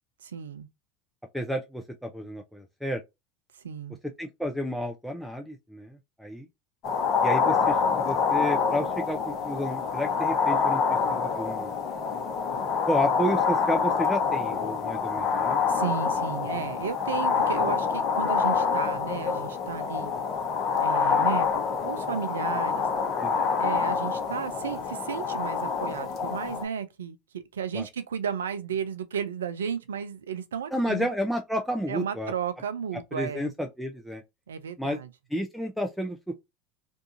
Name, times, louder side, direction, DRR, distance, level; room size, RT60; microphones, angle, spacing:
voice 1, 0.2-0.7 3.5-4.0 15.7-20.1 20.8-21.5 21.8-22.9 23.6-31.1 31.9-33.5 34.5-35.1, right 7 dB, 85° right, 0.4 m, -33 dB
voice 2, 1.3-3.0 4.2-6.5 7.2-11.7 12.9-15.6 23.2-23.4 27.7-27.9 30.7-32.3 33.1-34.2 34.8-35.0 35.3-36.3, equal, ahead, 0.4 m, -31 dB
sound 1, 6.8-26.6, left 5 dB, 45° left, 0.8 m, -26 dB
2.6 x 2.4 x 2.5 m
hypercardioid pair, 80°, 0 cm